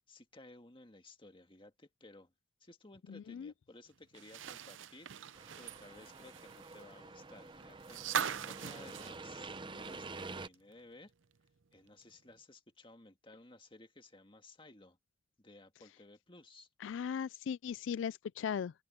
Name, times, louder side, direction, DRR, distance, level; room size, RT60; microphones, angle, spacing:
voice 1, 0.1-2.3 2.6-11.1 11.7-15.0 15.4-16.7, left 2 dB, 25° left, 1.9 m, -57 dB
voice 2, 3.1-3.5 16.8-18.7, left 7 dB, 80° left, 0.3 m, -38 dB
sound 1, 4.1-10.2 10.5-10.6 12.0-12.1, right 8 dB, 90° right, 0.6 m, -41 dB
sound 2, 5.3-10.5, right 3 dB, 25° right, 0.7 m, -48 dB
open air
head